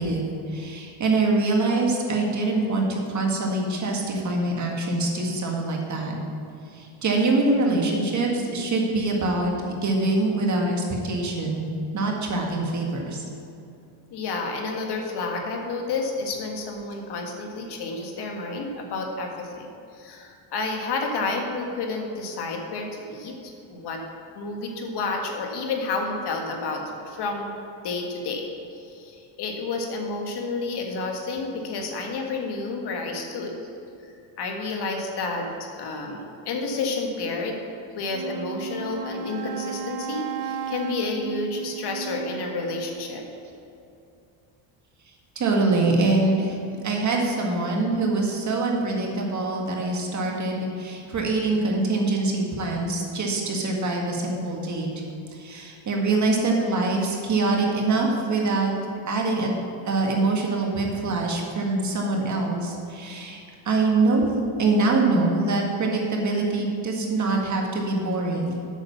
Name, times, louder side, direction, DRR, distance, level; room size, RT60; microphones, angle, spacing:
voice 1, 0.0-6.1 6.7-11.7 11.9-13.2 45.4-46.6 46.8-54.9 55.3-58.7 59.1-59.5 59.9-68.6, right 2 dB, 40° right, 0 dB, 1.7 m, -24 dB
voice 2, 14.1-19.7 19.9-23.4 23.7-24.0 24.4-27.6 27.8-28.5 28.7-33.5 34.4-37.6 38.0-43.2, left 3 dB, 55° left, 2 dB, 1.8 m, -30 dB
Wind instrument woodwind instrument, 38.0-43.0, right 7 dB, 60° right, 0.7 m, -34 dB
8.0 x 6.6 x 7.0 m, 2.6 s
cardioid pair, 110°, 46 cm